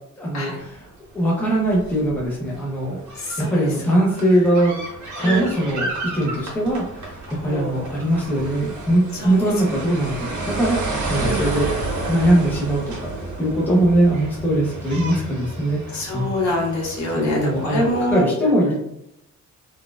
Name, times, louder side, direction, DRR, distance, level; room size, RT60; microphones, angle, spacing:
voice 1, 0.2-0.9 1.1-4.7 5.2-11.7 12.1-16.3 17.1-18.8, right 1 dB, 5° left, -4 dB, 0.6 m, -21 dB
sound 1, 0.6-0.9 1.2-18.2, right 2 dB, 65° right, 1.1 m, -31 dB
voice 2, 7.5-7.9 9.2-9.4 11.2-11.4 15.9-18.3, left 1 dB, 60° left, -3 dB, 1.2 m, -25 dB
4.0 x 2.3 x 2.3 m, 0.79 s
wide cardioid pair, 180°, 31 cm